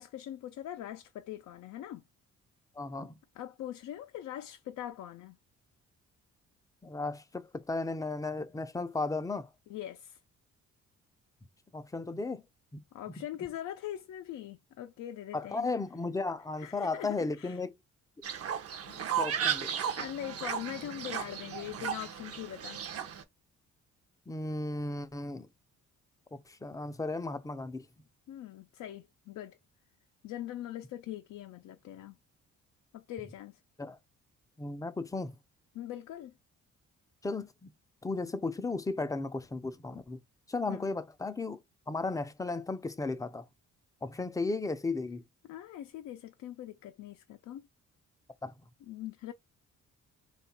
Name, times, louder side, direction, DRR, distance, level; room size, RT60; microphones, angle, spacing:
voice 1, 0.0-2.1 3.4-5.4 9.7-10.2 12.9-15.7 16.6-17.6 18.9-19.0 19.6-19.7 20.0-22.8 28.3-29.6 30.2-32.2 32.9-33.6 35.7-36.3 40.7-40.9 45.5-47.7 48.9-49.3, left 12 dB, 70° left, 0.5 m, -42 dB
voice 2, 2.8-3.1 6.8-9.5 11.7-12.4 15.3-17.7 18.9-19.7 24.3-25.5 26.3-27.9 33.8-34.0 34.6-35.4 37.2-37.7 38.0-40.2 40.5-41.6 41.9-43.5 44.0-45.2 48.4-48.5, left 3 dB, 10° left, 0.4 m, -35 dB
Fowl, 18.2-23.2, right 8 dB, 50° right, 0.7 m, -35 dB
3.1 x 2.4 x 4.3 m
cardioid pair, 90°, 30 cm